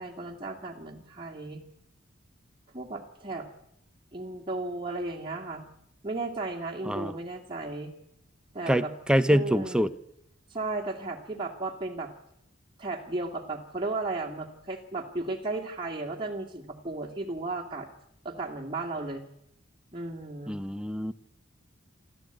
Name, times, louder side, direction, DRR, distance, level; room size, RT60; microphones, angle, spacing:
voice 1, 0.0-1.6 2.7-3.5 4.1-5.7 6.0-7.9 8.5-8.9 9.3-9.9 10.5-12.1 12.8-17.9 18.2-19.2 19.9-20.6, right 2 dB, 25° right, -1 dB, 2.4 m, -34 dB
voice 2, 8.7-9.9 20.5-21.1, equal, 5° right, 13 dB, 0.8 m, -25 dB
26.5 x 14.0 x 9.1 m, 0.79 s
head